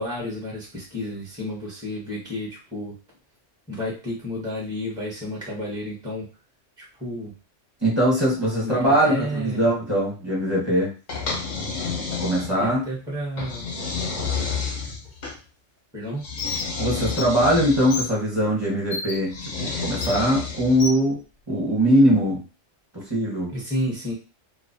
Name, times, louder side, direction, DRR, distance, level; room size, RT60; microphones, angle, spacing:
voice 1, 0.0-2.9 3.7-6.3 6.8-7.3 8.6-9.6 12.6-13.7 15.9-16.2 23.5-24.1, left 1 dB, 5° right, -3 dB, 0.6 m, -31 dB
voice 2, 7.8-10.9 12.2-12.8 16.8-19.3 19.6-21.2 21.5-22.4 22.9-23.5, equal, 25° right, -5 dB, 0.9 m, -21 dB
sound 1, 11.1-12.8 13.4-15.4 16.2-18.1 19.3-20.9, left 5 dB, 50° left, 0.6 m, -30 dB
Bird, 16.4-16.7 17.1-17.2 17.9-18.1 18.9-19.1 20.0-20.2 20.8-21.0, left 4 dB, 85° left, 1.0 m, -30 dB
2.3 x 2.0 x 2.6 m, 0.33 s
omnidirectional pair, 1.3 m